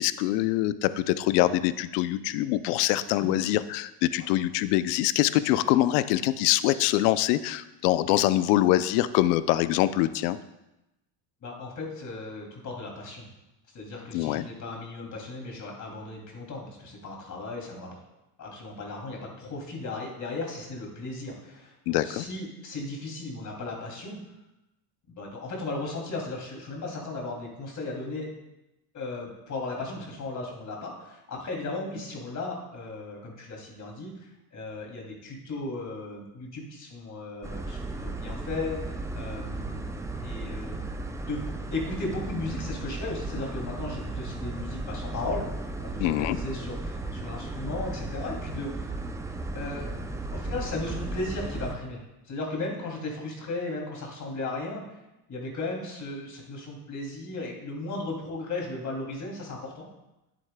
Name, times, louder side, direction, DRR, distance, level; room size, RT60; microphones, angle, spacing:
voice 1, 0.0-10.4 14.1-14.5 21.9-22.2 46.0-46.4, left 14 dB, 75° left, 14 dB, 0.6 m, -24 dB
voice 2, 11.4-13.3 13.7-18.0 18.4-24.2 25.2-28.3 28.9-39.9 40.2-40.9 41.3-41.4 41.7-45.5 45.8-48.9 49.5-50.0 50.3-55.0 55.3-59.9, left 2 dB, 40° left, 0 dB, 2.7 m, -36 dB
sound 1, 37.4-51.8, right 2 dB, 5° right, 0.4 m, -35 dB
11.0 x 7.9 x 2.2 m, 0.94 s
supercardioid pair, 95°, 47 cm